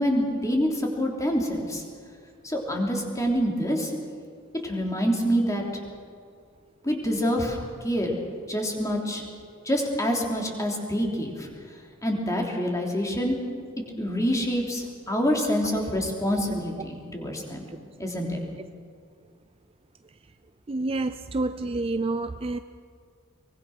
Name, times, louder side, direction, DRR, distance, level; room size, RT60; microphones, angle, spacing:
voice 1, 0.0-1.8 2.4-3.9 4.6-5.8 6.8-8.2 8.5-9.2 9.6-11.5 12.0-13.3 14.0-17.7 18.0-18.4, equal, 15° left, 0 dB, 3.2 m, -26 dB
voice 2, 20.7-22.6, right 2 dB, 25° right, 10 dB, 0.5 m, -28 dB
23.5 x 20.5 x 6.1 m, 2.2 s
head